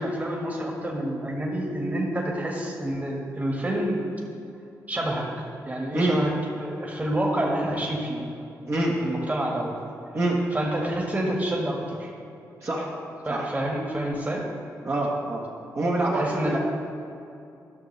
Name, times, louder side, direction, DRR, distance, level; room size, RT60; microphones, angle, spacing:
voice 1, 0.0-4.0 4.9-5.3 5.6-6.3 6.6-8.2 9.0-9.8 10.5-12.1 13.2-14.4 16.1-16.6, right 1 dB, 25° right, -1 dB, 1.7 m, -28 dB
voice 2, 14.8-15.4 15.7-16.3, right 2 dB, 45° right, -5 dB, 1.4 m, -25 dB
12.5 x 6.2 x 3.3 m, 2.6 s
cardioid pair, 65°, 7 cm